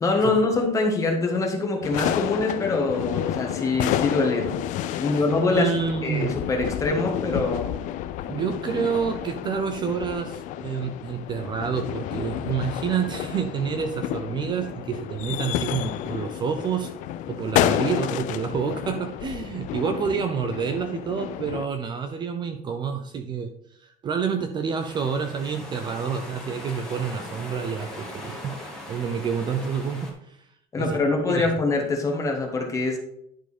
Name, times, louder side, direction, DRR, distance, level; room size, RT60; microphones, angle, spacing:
voice 1, 0.0-4.5 5.0-5.7 6.0-7.8 30.7-33.0, left 3 dB, 20° left, 2 dB, 1.4 m, -24 dB
sound 1, 1.8-21.7, left 12 dB, 50° left, 0.4 m, -30 dB
voice 2, 5.5-6.4 8.3-16.9 17.3-23.5 23.8-28.6 28.9-30.5 30.8-31.0 31.3-31.5, right 6 dB, 25° right, 7 dB, 0.5 m, -28 dB
sound 2, 24.7-30.1, left 1 dB, 5° left, 1.7 m, -40 dB
10.5 x 4.6 x 4.3 m, 0.75 s
cardioid pair, 170°, 17 cm